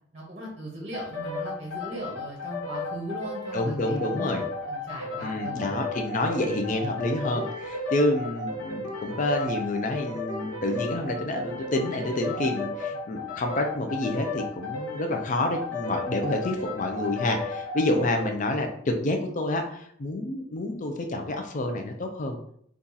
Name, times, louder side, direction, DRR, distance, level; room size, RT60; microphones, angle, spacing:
voice 1, 0.1-4.4 4.7-5.7, right 1 dB, 35° right, -1 dB, 0.8 m, -38 dB
sound 1, 0.9-18.4, left 3 dB, 85° left, 1.1 m, -34 dB
voice 2, 3.5-4.4 5.2-22.4, left 1 dB, 40° left, 4 dB, 0.4 m, -28 dB
2.7 x 2.4 x 3.8 m, 0.66 s
head